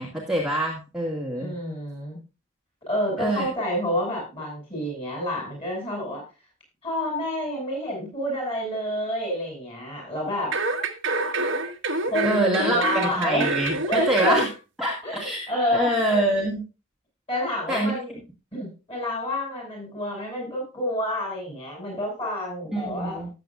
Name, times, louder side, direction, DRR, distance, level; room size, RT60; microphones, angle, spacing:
voice 1, 0.0-1.5 3.2-3.5 12.2-14.5 14.8-16.6 17.7-17.9 22.7-23.3, right 1 dB, ahead, -3 dB, 2.1 m, -25 dB
voice 2, 1.4-2.2 2.9-6.2 6.8-10.6 12.0-13.5 13.8-14.4 15.0-15.9 17.3-18.2 18.5-23.2, equal, 25° left, -1 dB, 7.5 m, -28 dB
sound 1, 10.5-14.5 14.9-15.0, right 3 dB, 55° right, 1.5 m, -26 dB
18.0 x 8.0 x 2.5 m, 0.30 s
head